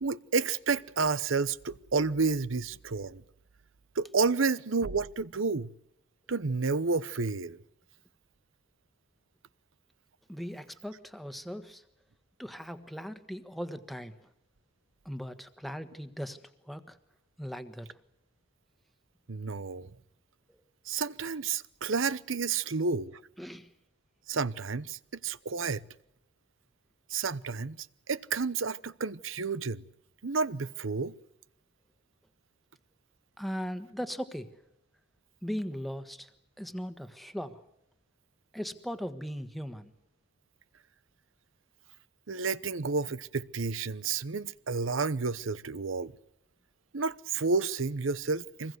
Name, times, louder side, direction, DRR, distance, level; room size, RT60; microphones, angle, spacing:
voice 1, 0.0-3.2 4.0-5.7 6.3-7.6 19.3-19.9 20.9-23.2 24.3-25.8 27.1-27.8 28.1-29.8 30.2-31.2 42.3-46.1 46.9-48.8, right 4 dB, 85° right, 0.9 m, -30 dB
voice 2, 10.3-11.8 12.4-14.3 15.0-17.0 17.4-18.0 20.5-20.6 23.4-23.7 33.4-34.6 35.4-36.3 36.6-37.6 38.5-39.9, equal, ahead, 1.4 m, -39 dB
25.5 x 21.0 x 8.0 m
head